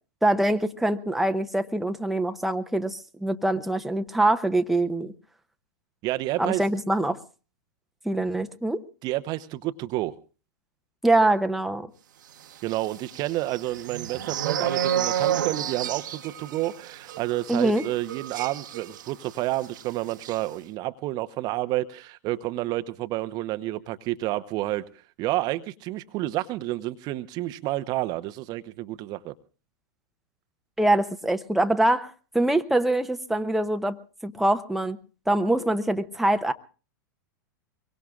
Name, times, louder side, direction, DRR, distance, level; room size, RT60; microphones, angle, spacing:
voice 1, 0.2-5.1 6.4-7.2 8.0-8.8 11.0-11.9 17.5-17.8 30.8-34.0 34.2-35.0 35.3-36.5, right 1 dB, ahead, 0.9 m, -24 dB
voice 2, 6.0-6.6 9.0-10.1 12.6-24.9 25.2-29.3, right 16 dB, 40° right, 0.9 m, -30 dB
sound 1, 12.6-19.4 19.6-19.8 20.1-20.4, right 10 dB, 65° right, 1.2 m, -30 dB
24.0 x 23.0 x 2.4 m
figure-of-eight pair, 95°, 11 cm